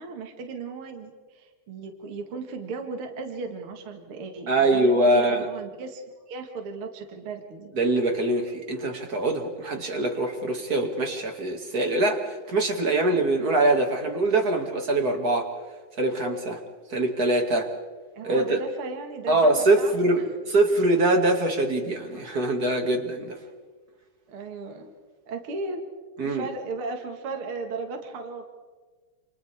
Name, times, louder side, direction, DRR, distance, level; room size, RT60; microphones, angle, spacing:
voice 1, 0.0-6.0 6.3-7.7 18.1-19.5 19.8-20.3 24.3-24.9 25.3-25.9 26.2-28.4, right 4 dB, 50° right, 4 dB, 2.4 m, -36 dB
voice 2, 4.5-5.5 7.8-15.5 16.0-16.6 16.9-17.7 18.2-18.6 19.3-23.4 26.2-26.5, right 2 dB, 30° right, 3 dB, 2.5 m, -23 dB
29.0 x 29.0 x 3.6 m, 1.4 s
omnidirectional pair, 3.6 m